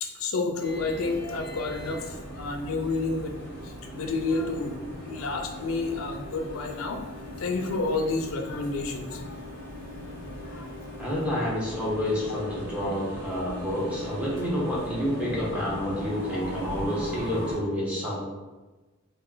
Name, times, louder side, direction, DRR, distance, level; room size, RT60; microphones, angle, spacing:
voice 1, 0.0-3.3 3.6-4.8 5.0-7.0 7.4-9.4 10.5-10.7, left 3 dB, 80° left, 4 dB, 0.5 m, -30 dB
sound 1, 0.6-17.6, left 1 dB, 40° right, 1.2 m, -38 dB
voice 2, 11.0-18.2, equal, 5° right, -6 dB, 0.8 m, -29 dB
3.1 x 2.6 x 3.7 m, 1.2 s
head